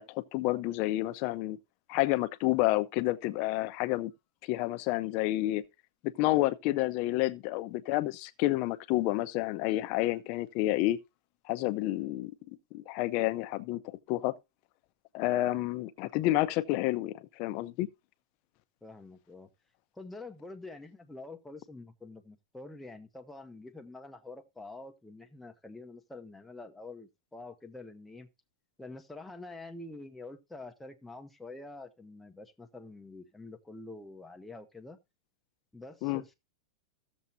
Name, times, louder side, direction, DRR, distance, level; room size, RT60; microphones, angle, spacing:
voice 1, 0.0-1.6 1.9-4.1 4.5-5.6 6.0-11.0 11.5-12.3 12.7-13.8 14.1-14.3 15.1-17.9 36.0-36.2, left 17 dB, 40° left, 0.7 m, -29 dB
voice 2, 18.8-19.5 20.0-28.3 28.8-35.0 35.7-36.3, left 2 dB, 5° left, 0.9 m, -47 dB
15.0 x 7.2 x 2.7 m
supercardioid pair, 155°, 3 cm